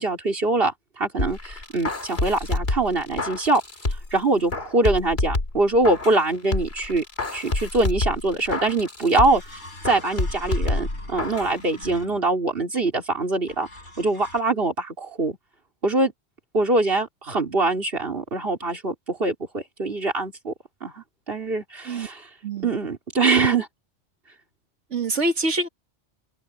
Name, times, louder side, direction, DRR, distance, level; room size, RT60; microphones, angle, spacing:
voice 1, 0.0-3.6 4.1-7.0 7.3-13.7 14.0-15.4 15.8-16.1 16.5-20.5 20.8-22.3 22.6-23.7, right 2 dB, 55° right, 3.8 m, -23 dB
sound 1, 1.2-4.2 4.5-6.2 6.5-9.5 9.8-11.5 11.8-11.9, left 2 dB, 60° left, 3.1 m, -28 dB
sound 2, 8.6-8.7 9.3-12.5 13.5-14.4, left 1 dB, 80° left, 6.3 m, -38 dB
voice 2, 24.9-25.7, right 2 dB, 80° right, 2.1 m, -25 dB
omnidirectional pair, 1.2 m